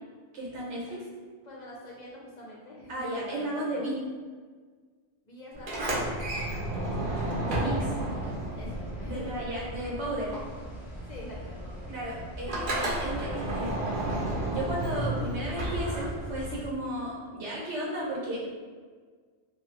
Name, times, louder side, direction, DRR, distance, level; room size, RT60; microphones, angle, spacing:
voice 1, 0.3-0.8 2.9-4.0 7.4-7.9 9.0-10.3 11.9-14.0 14.5-18.5, right 1 dB, 75° right, -4 dB, 1.2 m, -34 dB
voice 2, 1.4-3.9 5.2-7.6 8.6-9.8 11.1-11.9 13.1-13.4, left 1 dB, 50° left, -4 dB, 0.6 m, -45 dB
Sliding door, 5.6-9.8 10.1-16.5, right 1 dB, 50° right, 0.9 m, -32 dB
sound 1, 6.9-16.7, equal, ahead, 0.4 m, -42 dB
2.9 x 2.3 x 3.1 m, 1.5 s
omnidirectional pair, 1.2 m